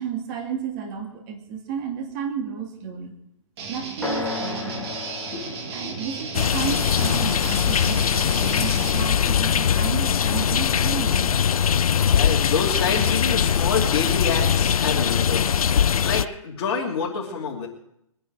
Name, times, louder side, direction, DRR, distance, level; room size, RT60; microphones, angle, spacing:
voice 1, 0.0-3.1 3.7-4.9 5.7-11.5, right 7 dB, 30° right, 2 dB, 2.5 m, -32 dB
Guitar, 3.6-9.0, right 4 dB, 50° right, 3.0 m, -34 dB
sound 1, 4.0-7.9, left 2 dB, 5° left, 2.8 m, -34 dB
voice 2, 5.3-5.8 12.1-15.6 16.0-17.7, left 5 dB, 45° left, -2 dB, 2.9 m, -27 dB
sound 2, 6.3-16.3, left 8 dB, 80° left, 0.5 m, -21 dB
22.5 x 9.9 x 4.8 m, 0.75 s
hypercardioid pair, 145°, 18 cm